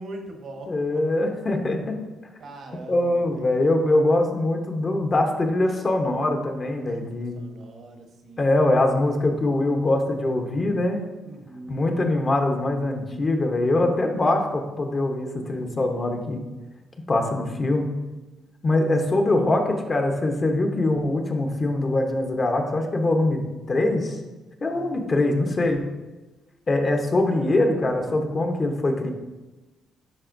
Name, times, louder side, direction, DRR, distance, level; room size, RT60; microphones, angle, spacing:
voice 1, 0.0-0.7 2.4-3.7 6.8-8.5 11.2-11.9 24.7-25.0, right 2 dB, 60° right, 3 dB, 1.1 m, -41 dB
voice 2, 0.7-2.0 2.9-7.4 8.4-11.0 11.7-16.4 17.1-17.8 18.6-23.4 23.7-24.2 24.6-25.8 26.7-29.1, left 2 dB, 35° left, 3 dB, 1.0 m, -23 dB
10.5 x 4.1 x 2.6 m, 1.1 s
cardioid pair, 90°, 0 cm